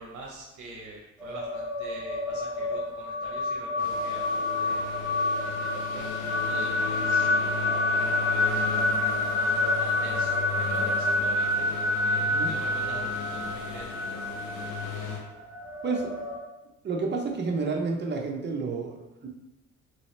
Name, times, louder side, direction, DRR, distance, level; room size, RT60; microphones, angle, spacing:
voice 1, 0.0-4.8 5.4-8.6 9.3-11.7 12.0-14.6, right 3 dB, 70° right, -2 dB, 0.7 m, -45 dB
sound 1, 1.2-16.4, left 2 dB, 5° left, 1.1 m, -28 dB
sound 2, 3.8-15.2, left 5 dB, 80° left, 0.8 m, -36 dB
voice 2, 12.2-12.6 15.8-16.1 16.8-19.3, right 4 dB, 35° right, 2 dB, 0.6 m, -30 dB
3.1 x 2.7 x 3.2 m, 1.0 s
cardioid pair, 90°, 30 cm